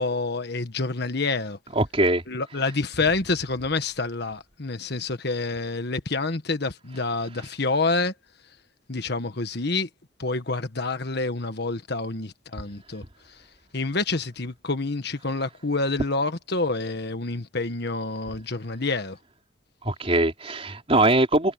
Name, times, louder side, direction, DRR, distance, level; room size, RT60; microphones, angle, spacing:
voice 1, 0.0-1.6 2.3-8.1 8.9-9.9 10.2-13.0 13.7-19.2, left 3 dB, 60° left, 1.5 m, -27 dB
voice 2, 1.8-2.2 19.8-21.5, right 2 dB, 30° right, 4.1 m, -21 dB
head